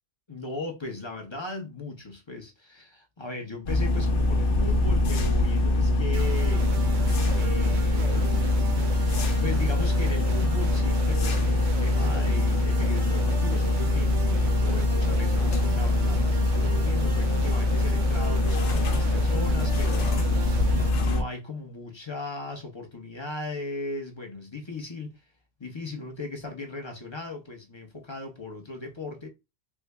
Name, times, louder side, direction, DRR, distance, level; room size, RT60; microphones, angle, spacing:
voice 1, 0.3-6.8 7.3-8.5 9.4-20.7 21.0-25.2 25.6-29.3, left 3 dB, 30° left, 0.6 m, -37 dB
sound 1, 3.7-21.2, left 2 dB, 70° left, 1.0 m, -23 dB
sound 2, 6.1-20.9, right 7 dB, 80° right, 1.0 m, -39 dB
3.6 x 2.1 x 3.3 m
omnidirectional pair, 1.3 m